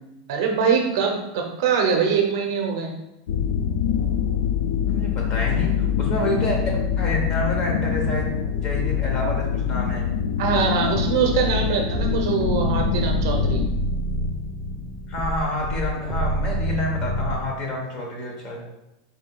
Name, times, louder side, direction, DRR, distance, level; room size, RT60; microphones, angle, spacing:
voice 1, 0.3-2.9 10.4-13.6, right 6 dB, 55° right, 2 dB, 0.6 m, -23 dB
sound 1, 3.3-13.7, left 8 dB, 85° left, 0.4 m, -24 dB
voice 2, 4.9-8.3 8.6-10.1 15.1-18.6, left 1 dB, 25° left, 0 dB, 0.9 m, -28 dB
sound 2, 11.5-17.4, equal, 5° left, 0.5 m, -27 dB
4.8 x 4.1 x 2.2 m, 0.93 s
supercardioid pair, 175°, 2 cm